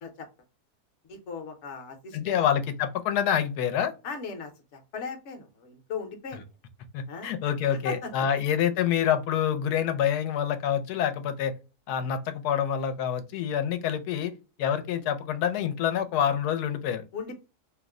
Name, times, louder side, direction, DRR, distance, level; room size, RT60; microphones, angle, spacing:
voice 1, 1.1-2.4 4.0-6.4 7.1-7.3 7.8-8.1 17.1-17.4, left 5 dB, 55° left, 1.0 m, -37 dB
voice 2, 2.1-3.9 6.9-11.5 11.9-14.3 14.6-17.0, left 9 dB, 90° left, 1.1 m, -27 dB
2.9 x 2.0 x 3.5 m
omnidirectional pair, 1.6 m